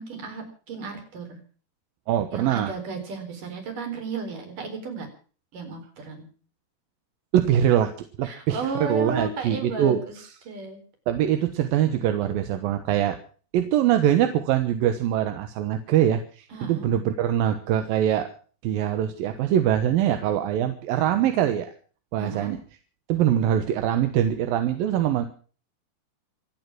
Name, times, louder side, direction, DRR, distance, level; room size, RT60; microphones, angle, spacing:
voice 1, 0.0-1.4 2.3-5.1 5.5-6.3 8.2-10.1 10.5-10.8 16.5-16.9 22.2-22.6, right 4 dB, 50° right, 5 dB, 5.6 m, -34 dB
voice 2, 2.1-2.7 7.3-7.9 8.2-10.3 11.1-13.2 13.5-18.3 18.6-21.7 22.1-22.6 23.1-25.3, right 10 dB, 70° right, 8 dB, 2.6 m, -23 dB
26.0 x 8.8 x 6.1 m, 0.41 s
omnidirectional pair, 4.8 m